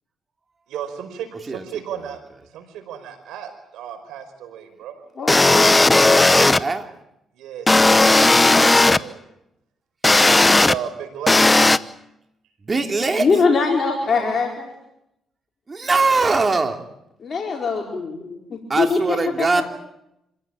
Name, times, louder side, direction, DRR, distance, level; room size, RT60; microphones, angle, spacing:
voice 1, 0.7-2.2 2.5-5.0 7.4-9.2 10.1-11.4 14.0-14.4, right 9 dB, 85° right, 6 dB, 5.0 m, -34 dB
voice 2, 5.1-5.8 13.2-14.7 17.2-19.0 19.4-19.5, left 4 dB, 45° left, 0 dB, 4.6 m, -22 dB
sound 1, 5.3-6.6 7.7-9.0 10.0-10.7 11.3-11.8, left 2 dB, 15° left, 0.9 m, -14 dB
voice 3, 6.3-6.9 12.6-13.3 15.7-16.8 18.7-19.6, right 3 dB, 30° right, 5 dB, 3.0 m, -21 dB
27.0 x 17.0 x 9.0 m, 0.83 s
cardioid pair, 90°, 0 cm